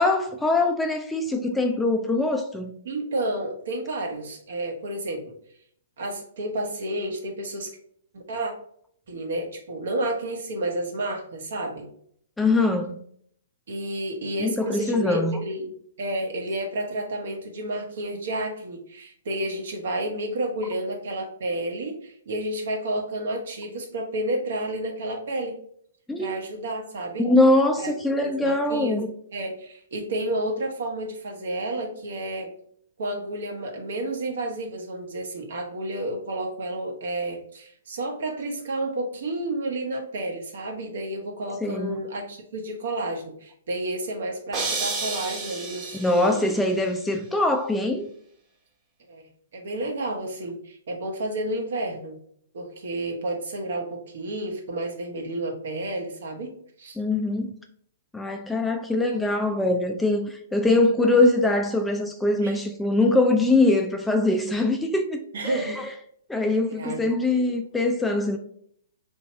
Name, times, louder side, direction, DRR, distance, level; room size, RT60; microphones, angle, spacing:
voice 1, 0.0-2.8 12.4-13.0 14.4-15.4 26.1-26.3 27.2-29.1 41.6-42.0 45.9-48.1 57.0-57.5 58.1-65.9 66.3-68.4, left 2 dB, 5° left, 0.4 m, -23 dB
voice 2, 2.8-5.2 6.0-7.7 8.1-8.5 9.1-11.9 13.7-15.7 16.0-25.6 26.2-27.3 27.8-27.9 28.2-29.0 29.3-32.5 33.0-46.5 49.1-52.2 52.5-56.5 56.8-57.0 62.4-62.6 65.3-65.8 66.7-67.5, right 1 dB, 60° right, 1.0 m, -31 dB
sound 1, 44.5-46.6, right 3 dB, 25° right, 1.0 m, -31 dB
3.0 x 2.7 x 4.4 m
figure-of-eight pair, 120°, 0 cm